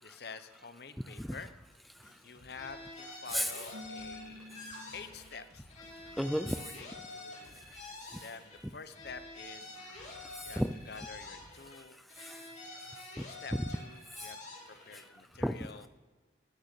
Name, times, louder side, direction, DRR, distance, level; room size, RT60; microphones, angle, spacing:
voice 1, 0.0-1.5 2.2-4.7 4.9-5.7 6.3-7.6 8.2-9.8 10.4-12.0 13.3-14.4 14.7-15.9, left 5 dB, 60° left, 11 dB, 0.9 m, -48 dB
sound 1, 1.4-3.0 3.3-11.5, left 1 dB, 20° left, 2.6 m, -61 dB
sound 2, 2.5-5.4 5.7-8.6 8.9-11.8 12.1-15.0, left 2 dB, 35° left, 3.3 m, -48 dB
Keyboard (musical), 3.7-5.7, equal, 65° right, 1.4 m, -50 dB
voice 2, 4.5-4.8 6.1-6.7 7.4-8.2 10.0-10.7 11.9-13.3 14.1-14.3 14.9-15.0 15.4-15.6, equal, ahead, 9 dB, 0.4 m, -37 dB
12.5 x 6.5 x 8.4 m, 1.3 s
head